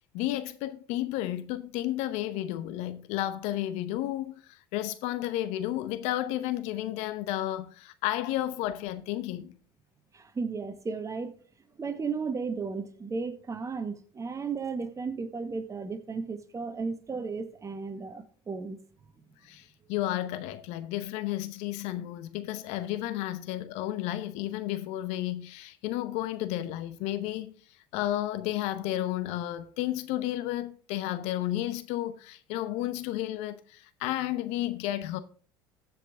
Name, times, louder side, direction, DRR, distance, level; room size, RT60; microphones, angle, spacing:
voice 1, 0.1-9.6 19.4-27.5 27.9-35.2, left 14 dB, 65° left, 0.8 m, -32 dB
voice 2, 10.1-11.3 11.8-18.8, right 4 dB, 25° right, 1.4 m, -34 dB
15.0 x 5.3 x 3.6 m
hypercardioid pair, 75°, 12 cm